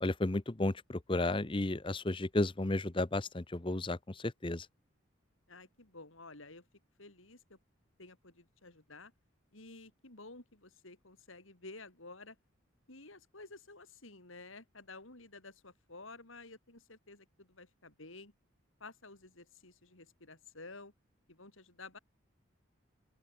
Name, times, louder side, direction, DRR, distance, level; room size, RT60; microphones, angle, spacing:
voice 1, 0.0-4.7, left 2 dB, 25° left, 0.8 m, -33 dB
voice 2, 5.5-6.7 7.0-7.6 8.0-9.1 9.5-12.4 12.9-18.3 18.8-20.9 21.3-22.0, left 3 dB, 75° left, 4.5 m, -52 dB
open air
head